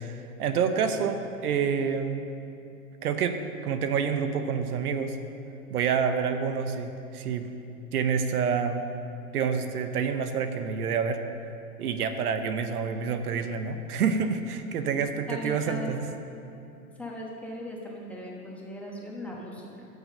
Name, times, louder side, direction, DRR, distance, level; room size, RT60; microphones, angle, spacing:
voice 1, 0.0-2.2 3.0-5.1 5.7-7.5 7.9-8.8 9.3-11.2 11.8-16.0, right 6 dB, 75° right, 8 dB, 0.8 m, -28 dB
voice 2, 15.3-15.9 17.0-19.9, equal, 5° left, -3 dB, 1.1 m, -38 dB
7.2 x 6.4 x 7.2 m, 2.7 s
hypercardioid pair, 115°, 45 cm